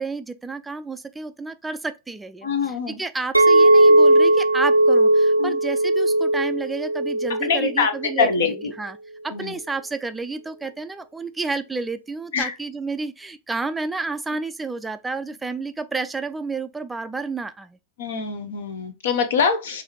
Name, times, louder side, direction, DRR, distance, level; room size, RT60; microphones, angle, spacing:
voice 1, 0.0-8.3 8.8-9.0 9.2-17.8, right 3 dB, 10° right, 0.3 m, -30 dB
voice 2, 2.4-3.0 5.4-5.6 7.4-8.7 9.3-9.5 12.3-12.5 18.0-19.8, left 5 dB, 60° left, 0.7 m, -24 dB
Chink clink, 3.3-8.6, right 1 dB, 85° right, 0.4 m, -18 dB
4.8 x 2.6 x 2.8 m
figure-of-eight pair, 90°, 0 cm